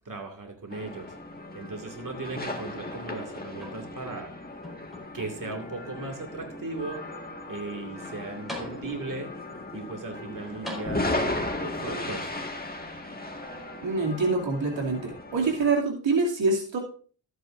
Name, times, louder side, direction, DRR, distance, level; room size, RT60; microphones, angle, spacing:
voice 1, 0.1-1.1 1.5-4.3 5.1-7.0 7.5-9.3 9.7-12.3, right 3 dB, 45° right, 2 dB, 2.2 m, -37 dB
sound 1, 0.7-15.7, left 2 dB, 20° left, 1.7 m, -36 dB
sound 2, 3.6-4.2 4.6-5.6 6.3-6.4 8.0-8.1 8.5-9.3 10.6-11.5 12.6-12.7, left 1 dB, ahead, 4.5 m, -42 dB
voice 2, 13.8-16.8, right 3 dB, 90° right, -1 dB, 2.6 m, -25 dB
13.0 x 9.4 x 2.5 m, 0.42 s
cardioid pair, 65°, 44 cm